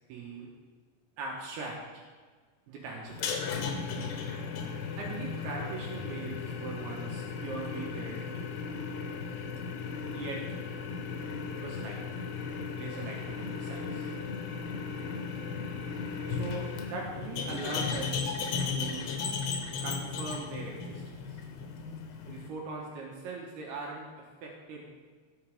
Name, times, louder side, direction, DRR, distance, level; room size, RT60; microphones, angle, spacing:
voice 1, 0.1-0.5 1.2-2.0 2.7-3.3 5.0-8.6 10.1-10.5 11.6-12.0 12.8-14.1 16.3-19.1 19.8-21.4 22.3-24.9, right 3 dB, 75° right, -2 dB, 3.1 m, -40 dB
sound 1, 3.1-22.5, left 5 dB, 85° left, 3.2 m, -36 dB
17.0 x 7.2 x 3.5 m, 1.5 s
omnidirectional pair, 4.7 m